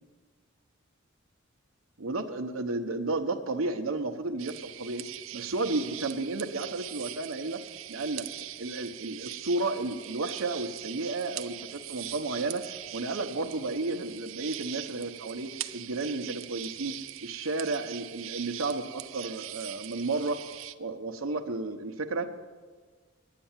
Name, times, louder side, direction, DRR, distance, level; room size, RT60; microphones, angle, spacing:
voice 1, 2.0-7.6 7.9-8.3 8.6-20.4 20.8-22.3, right 3 dB, 85° right, 5 dB, 0.9 m, -32 dB
sound 1, 4.4-20.7, right 14 dB, 70° right, 0.5 m, -42 dB
10.0 x 9.2 x 7.3 m, 1.4 s
head